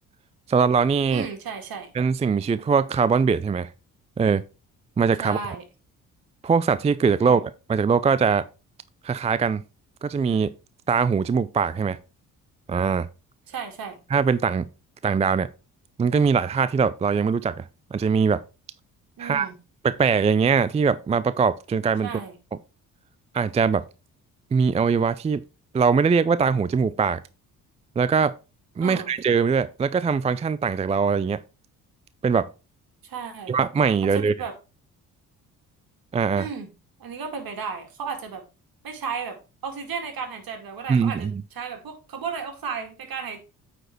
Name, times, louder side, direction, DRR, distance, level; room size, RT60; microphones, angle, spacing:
voice 1, 0.5-1.3 1.9-3.7 4.2-4.4 5.0-5.4 6.4-8.4 9.0-9.6 10.0-10.5 10.9-12.0 12.7-13.1 14.1-14.6 15.0-15.5 16.0-17.6 17.9-18.4 19.2-19.5 19.8-22.1 23.3-23.8 24.5-25.4 25.7-27.2 28.0-28.3 28.8-31.4 32.2-32.5 33.5-34.3 36.1-36.5 40.9-41.3, right 5 dB, 15° right, 0.4 m, -21 dB
voice 2, 1.1-1.9 5.2-5.6 7.2-7.4 13.5-14.0 19.2-19.6 22.0-22.3 28.8-29.1 33.0-33.6 34.1-34.5 36.4-36.7 37.0-38.4 38.8-39.4 39.6-43.4, right 6 dB, 55° right, 2.2 m, -34 dB
9.0 x 4.3 x 4.4 m
hypercardioid pair, 45°, 42 cm